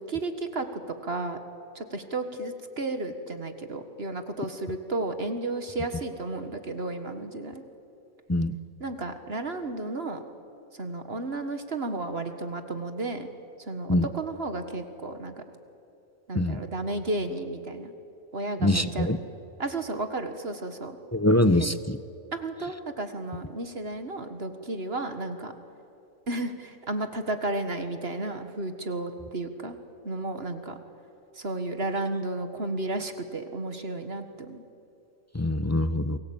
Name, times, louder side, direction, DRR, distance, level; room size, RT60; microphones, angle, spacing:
voice 1, 0.0-1.4 1.8-7.6 8.8-10.2 10.8-13.3 13.7-15.3 16.3-17.9 18.3-19.1 19.6-21.0 21.6-21.7 22.3-25.5 26.3-29.8 30.0-30.8 31.3-34.6, right 2 dB, 45° right, 8 dB, 1.8 m, -33 dB
voice 2, 18.6-19.2 21.1-22.0 35.3-36.2, left 1 dB, 15° left, 12 dB, 0.6 m, -23 dB
29.5 x 21.5 x 8.7 m, 2.7 s
omnidirectional pair, 1.4 m